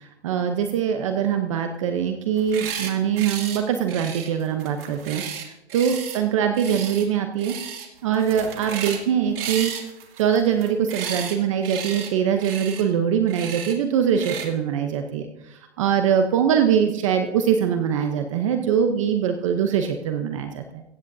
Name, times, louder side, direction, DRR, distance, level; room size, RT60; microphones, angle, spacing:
voice 1, 0.0-5.2 5.7-7.5 8.0-9.7 10.2-20.8, right 8 dB, 30° right, 6 dB, 0.8 m, -23 dB
sound 1, 2.3-2.9 3.2-3.6 3.9-6.2 6.5-7.1 7.4-7.9 8.1-9.0 9.4-11.4 11.6-12.1 12.4-12.8 13.3-13.7 14.2-14.5, right 8 dB, 60° right, 2.5 m, -33 dB
17.0 x 15.5 x 2.7 m, 0.90 s
hypercardioid pair, 170°, 33 cm